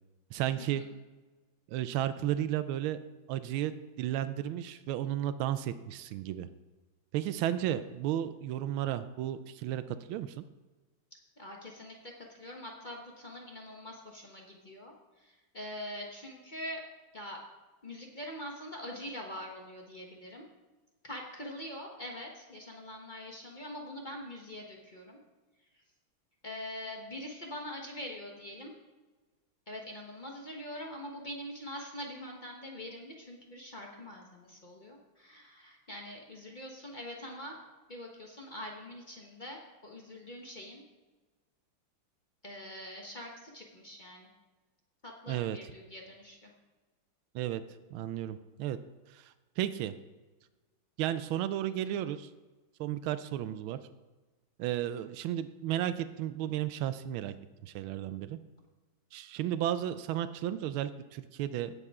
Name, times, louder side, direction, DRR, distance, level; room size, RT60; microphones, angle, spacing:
voice 1, 0.3-0.8 1.7-3.0 3.3-6.5 7.1-10.4 45.3-45.6 47.3-47.6 47.9-48.8 49.1-49.9 51.0-52.3 52.8-53.8 54.6-57.3 57.6-58.4 59.1-61.7, right 12 dB, 85° right, 13 dB, 1.4 m, -33 dB
voice 2, 11.4-14.9 15.2-16.8 17.1-17.4 17.8-20.5 21.0-25.2 26.4-28.7 29.7-37.6 37.9-40.8 42.4-44.3 45.0-46.5, left 1 dB, 30° left, 0 dB, 1.1 m, -44 dB
16.5 x 6.8 x 3.6 m, 1.2 s
omnidirectional pair, 2.2 m